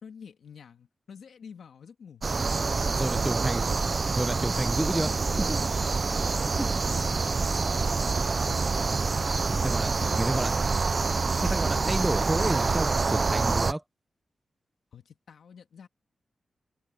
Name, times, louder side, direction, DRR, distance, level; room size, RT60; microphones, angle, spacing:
voice 1, 0.0-2.2 6.3-6.4 6.9-9.5 9.9-10.2 10.5-10.7 14.9-15.9, left 6 dB, 80° left, 2.5 m, -49 dB
sound 1, 2.2-13.7, right 4 dB, 35° right, 0.5 m, -26 dB
voice 2, 2.9-3.6 4.1-5.7 6.6-6.7 9.5-9.9 10.2-10.5 11.4-13.8, right 1 dB, 10° right, 0.9 m, -30 dB
wide cardioid pair, 155°, 0 cm